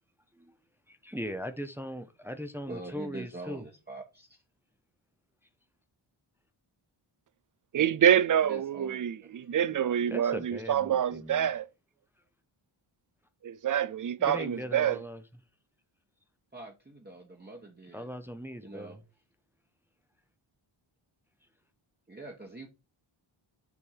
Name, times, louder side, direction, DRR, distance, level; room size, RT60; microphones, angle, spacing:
voice 1, 0.9-3.6 10.1-11.5 14.2-15.2 17.9-19.0, equal, 5° right, 0.7 m, -39 dB
voice 2, 2.7-4.4 8.5-9.3 9.7-10.0 16.5-18.1 18.6-19.0 22.1-22.7, right 2 dB, 20° right, 1.2 m, -45 dB
voice 3, 7.7-11.7 13.4-15.0, right 9 dB, 45° right, 0.4 m, -26 dB
7.0 x 3.6 x 4.6 m
wide cardioid pair, 100°, 50 cm